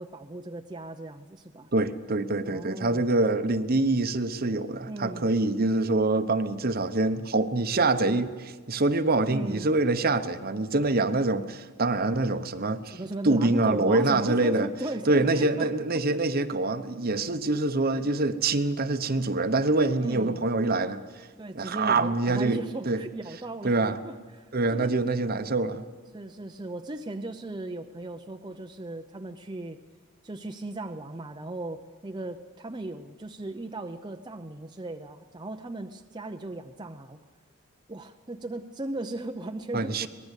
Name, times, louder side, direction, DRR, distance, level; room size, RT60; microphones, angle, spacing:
voice 1, 0.0-1.7 2.4-3.0 4.9-5.3 9.3-9.7 12.9-15.7 20.0-20.5 21.4-24.9 26.1-29.8 30.2-37.2 37.9-40.1, right 2 dB, 20° right, 0.7 m, -37 dB
voice 2, 1.7-13.0 13.2-14.7 15.1-21.0 21.5-22.6 22.8-23.0 23.6-24.0 24.5-25.8 39.7-40.1, right 2 dB, 45° right, 1.0 m, -25 dB
24.5 x 19.0 x 8.3 m
head